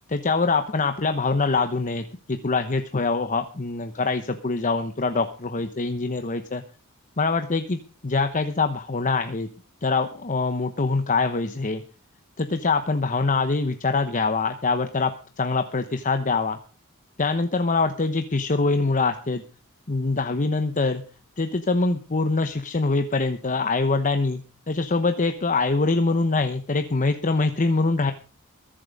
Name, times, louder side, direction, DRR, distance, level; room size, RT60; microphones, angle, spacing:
voice 1, 0.1-6.6 7.2-9.5 9.8-11.8 12.4-16.6 17.2-19.4 19.9-21.0 21.4-28.1, left 3 dB, 35° left, 8 dB, 0.9 m, -24 dB
22.0 x 7.6 x 5.2 m, 0.37 s
head